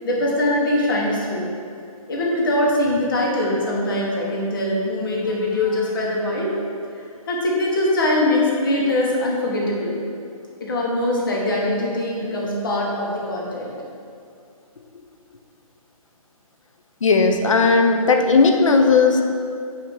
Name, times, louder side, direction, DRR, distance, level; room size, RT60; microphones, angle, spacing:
voice 1, 0.0-1.5 2.1-6.5 7.3-10.0 10.6-13.7, left 1 dB, 35° left, -3 dB, 1.4 m, -22 dB
voice 2, 17.0-19.2, left 4 dB, 60° left, 4 dB, 0.9 m, -16 dB
9.2 x 3.1 x 6.4 m, 2.4 s
hypercardioid pair, 175°, 19 cm